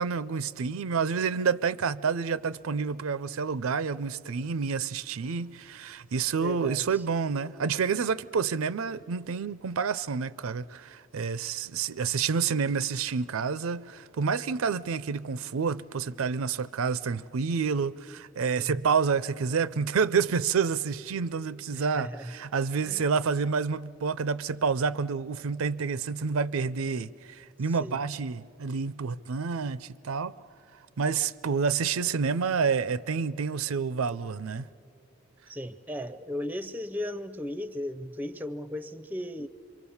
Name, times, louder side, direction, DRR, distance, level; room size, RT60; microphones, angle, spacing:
voice 1, 0.0-30.3 31.0-34.7, right 5 dB, 90° right, 0.5 m, -29 dB
voice 2, 6.4-7.0 18.6-18.8 21.7-22.3 22.8-23.1 27.7-28.0 35.5-39.5, left 1 dB, 10° right, 0.5 m, -36 dB
26.5 x 24.0 x 7.1 m
head